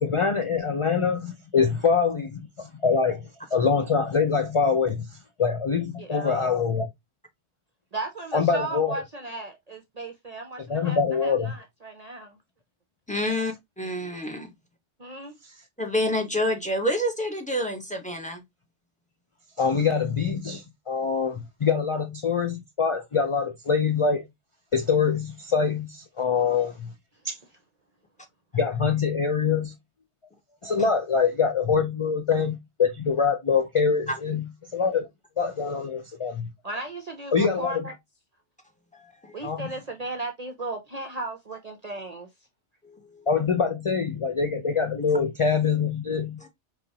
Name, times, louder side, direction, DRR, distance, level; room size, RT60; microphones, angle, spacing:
voice 1, 0.0-6.9 8.3-9.0 10.7-11.5 15.4-15.5 19.6-24.3 24.7-26.9 27.2-27.4 28.5-29.7 30.6-34.4 34.7-35.1 35.4-36.5 37.3-37.8 39.4-39.7 43.3-46.4, left 5 dB, 40° left, 0.4 m, -24 dB
voice 2, 6.0-6.6 7.9-12.4 15.0-15.4 36.6-37.9 39.3-42.3, right 2 dB, 40° right, 0.7 m, -36 dB
voice 3, 13.1-14.5 15.8-18.4 34.1-34.2 38.9-39.3 42.8-43.3 46.4-46.5, left 1 dB, 5° left, 1.1 m, -28 dB
5.2 x 3.2 x 2.8 m
omnidirectional pair, 1.2 m